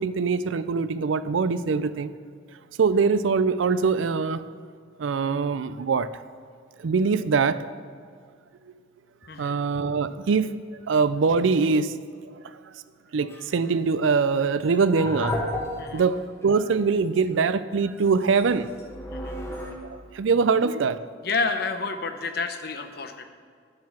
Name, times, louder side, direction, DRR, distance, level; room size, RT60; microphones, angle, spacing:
voice 1, 0.0-2.1 2.8-4.4 5.0-6.1 6.8-7.6 9.4-11.9 13.1-15.4 15.9-18.7 19.9-21.0, right 5 dB, 85° right, 14 dB, 0.4 m, -23 dB
voice 2, 9.3-9.6 15.8-16.0 19.1-19.4 21.2-23.2, left 4 dB, 55° left, 7 dB, 0.8 m, -29 dB
sound 1, 13.3-13.6 14.6-16.0 16.4-16.5 17.0-17.2 18.0-19.7, left 1 dB, 15° left, 1.2 m, -33 dB
9.4 x 7.6 x 5.8 m, 2.1 s
head